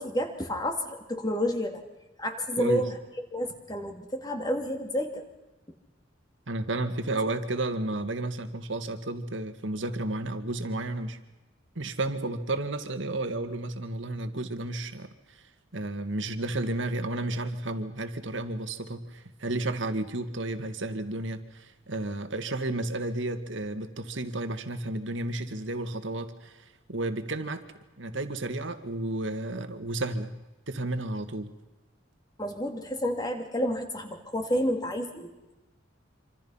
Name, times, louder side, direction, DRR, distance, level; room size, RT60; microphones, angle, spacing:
voice 1, 0.0-1.8 2.2-2.9 3.3-5.2 32.4-35.5, equal, 20° left, 4 dB, 2.8 m, -30 dB
voice 2, 6.5-11.2 11.8-15.4 15.7-27.6 28.0-30.3 30.7-31.5, right 2 dB, 70° right, 8 dB, 2.0 m, -32 dB
27.0 x 26.0 x 5.7 m, 1.1 s
head